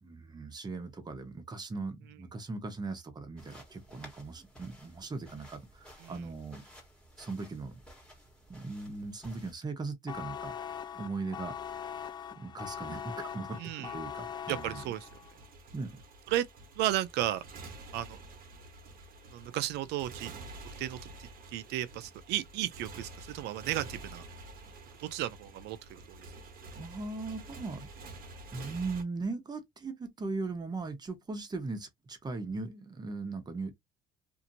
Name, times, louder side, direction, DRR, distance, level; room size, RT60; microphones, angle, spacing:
voice 1, 0.0-6.6 7.2-7.7 8.5-10.5 10.9-11.6 12.3-14.8 15.7-16.0 26.8-27.9 28.5-33.7, right 3 dB, 25° right, 1.0 m, -39 dB
sound 1, 3.4-9.5, equal, 5° left, 1.4 m, -55 dB
sound 2, 10.1-15.3, left 8 dB, 25° left, 0.4 m, -41 dB
voice 2, 13.6-13.9 14.5-15.1 16.3-16.4 16.8-17.4 17.9-18.2 19.3-20.3 20.8-24.2 25.0-26.2, right 13 dB, 80° right, 0.4 m, -34 dB
Motorcycle, 14.5-29.0, right 2 dB, 60° right, 1.0 m, -48 dB
2.8 x 2.5 x 2.7 m
cardioid pair, 110°, 17 cm